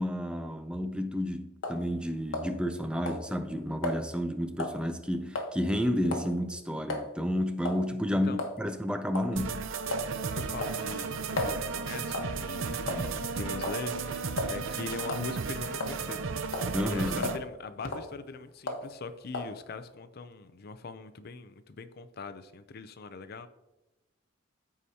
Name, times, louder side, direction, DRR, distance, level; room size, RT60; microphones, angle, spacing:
voice 1, 0.0-9.7 16.7-17.3, equal, 5° right, 0.4 m, -31 dB
sound 1, 1.6-1.8 2.3-2.8 3.1-3.2 3.8-4.0 4.6-4.8 5.4-5.5 6.1-6.3 6.9-7.1 7.7-7.9 8.4-8.6 9.1-9.3 9.9-10.1 10.6-11.6 12.1-12.4 12.9-13.2 13.6-13.8 14.4-14.5 15.0-15.3 15.8-16.2 16.5-16.7 17.2-17.4 17.8-18.1 18.7-18.9 19.3-19.5, left 2 dB, 90° left, 1.2 m, -34 dB
sound 2, 9.3-17.4, right 5 dB, 75° right, 0.6 m, -34 dB
voice 2, 10.3-16.3 16.8-23.5, left 4 dB, 50° left, 0.5 m, -41 dB
14.5 x 4.9 x 2.8 m
head